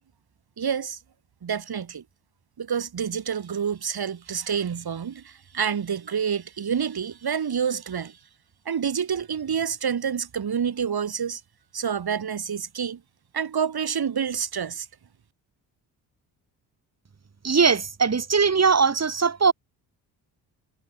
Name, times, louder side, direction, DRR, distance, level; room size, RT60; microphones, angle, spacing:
voice 1, 0.6-1.0 1.4-2.0 2.6-8.2 8.7-11.4 11.7-13.0 13.3-14.9, right 7 dB, 50° right, 4.3 m, -28 dB
voice 2, 17.4-19.5, right 5 dB, 30° right, 2.6 m, -20 dB
hypercardioid pair, 50°, 50 cm